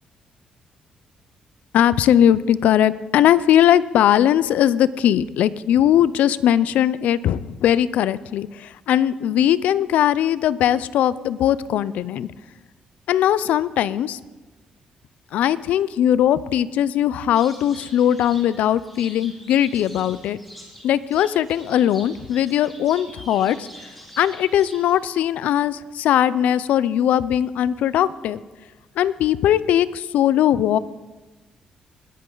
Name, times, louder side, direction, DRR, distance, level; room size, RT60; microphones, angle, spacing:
voice 1, 1.7-12.3 13.1-14.2 15.3-20.4 20.8-23.7 24.2-28.4 29.0-30.8, left 11 dB, 85° left, 18 dB, 0.5 m, -19 dB
sound 1, 17.3-25.1, equal, 5° left, 4.2 m, -44 dB
20.5 x 10.5 x 3.9 m, 1.2 s
cardioid pair, 110°, 2 cm